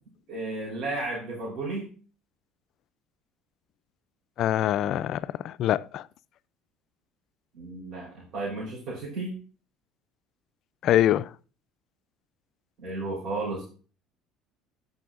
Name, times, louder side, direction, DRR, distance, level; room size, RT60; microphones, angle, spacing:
voice 1, 0.3-1.9 7.5-9.4 12.8-13.6, right 2 dB, 60° right, 3.7 m, -33 dB
voice 2, 4.4-6.0 10.8-11.3, left 12 dB, 60° left, 0.3 m, -24 dB
13.0 x 5.3 x 2.5 m
supercardioid pair, 80°, 0 cm